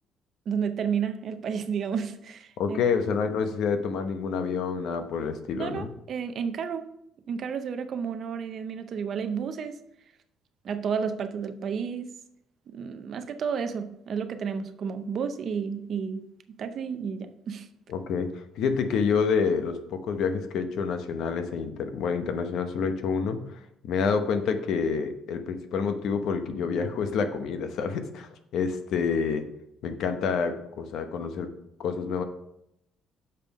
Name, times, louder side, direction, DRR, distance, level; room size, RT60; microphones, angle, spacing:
voice 1, 0.5-2.8 5.6-6.9 7.3-9.8 10.6-12.1 12.7-17.7, right 6 dB, 45° right, 0.6 m, -31 dB
voice 2, 2.6-5.9 17.9-29.5 29.8-31.5 31.8-32.2, left 5 dB, 60° left, 0.9 m, -28 dB
6.7 x 5.4 x 5.2 m
cardioid pair, 155°, 0 cm